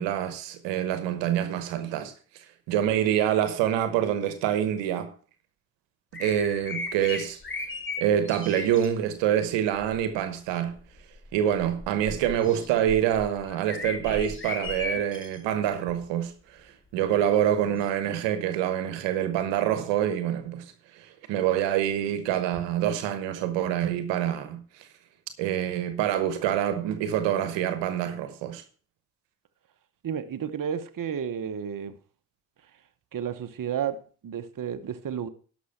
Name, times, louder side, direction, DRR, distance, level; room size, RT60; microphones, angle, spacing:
voice 1, 0.0-2.1 2.7-5.1 6.1-7.4 8.0-10.8 11.3-16.6 16.9-20.6 20.9-24.9 25.4-28.6, right 10 dB, 85° right, 1.1 m, -26 dB
sound 1, 6.1-8.9 9.7-10.1 10.7-15.4 15.9-16.0 17.8-17.9, left 3 dB, 25° left, 2.6 m, -36 dB
voice 2, 30.0-31.9 33.1-35.3, right 8 dB, 50° right, 1.1 m, -32 dB
11.5 x 6.2 x 5.7 m
hypercardioid pair, 45°, 42 cm